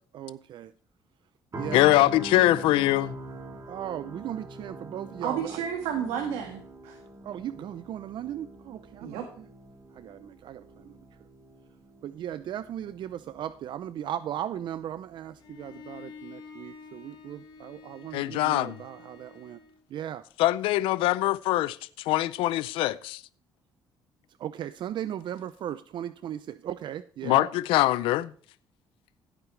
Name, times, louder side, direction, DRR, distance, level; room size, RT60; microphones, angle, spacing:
voice 1, 0.1-0.7 1.6-2.1 3.7-5.6 7.2-9.4 9.9-11.0 12.0-19.6 19.9-20.2 24.4-27.5, right 11 dB, 60° right, 0.6 m, -37 dB
sound 1, 1.5-15.5 15.9-16.1, right 1 dB, 40° right, 3.2 m, -44 dB
voice 2, 1.7-3.2 18.1-18.8 20.4-23.2 27.2-28.3, left 16 dB, 85° left, 0.5 m, -23 dB
voice 3, 5.2-7.0 9.0-9.3, right 8 dB, 90° right, 1.8 m, -31 dB
Bowed string instrument, 15.4-19.8, left 5 dB, 60° left, 4.4 m, -48 dB
16.0 x 8.9 x 3.3 m
cardioid pair, 85°, 9 cm